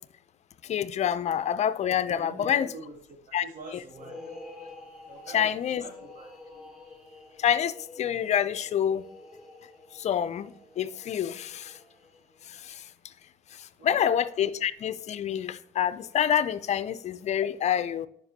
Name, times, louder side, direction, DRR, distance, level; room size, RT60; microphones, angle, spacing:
voice 1, 0.6-2.7 3.3-3.5 3.7-3.8 5.3-5.8 7.4-9.0 9.9-11.8 12.5-12.8 13.5-18.1, left 9 dB, 40° left, 0.4 m, -27 dB
voice 2, 2.1-4.2 5.1-5.5 5.8-6.7 13.8-14.1, right 2 dB, 50° right, 1.1 m, -44 dB
sound 1, 3.9-12.5, left 2 dB, 5° right, 1.5 m, -48 dB
11.0 x 5.2 x 2.8 m
cardioid pair, 110°, 17 cm